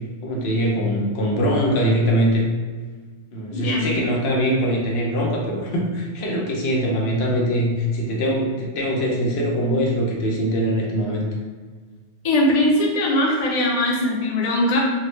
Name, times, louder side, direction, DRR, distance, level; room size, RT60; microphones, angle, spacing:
voice 1, 0.2-2.5 3.3-11.2, equal, 70° left, -2 dB, 0.8 m, -22 dB
voice 2, 3.5-3.9 12.2-14.8, left 1 dB, 45° left, -3 dB, 0.6 m, -20 dB
3.6 x 2.1 x 3.0 m, 1.5 s
omnidirectional pair, 1.1 m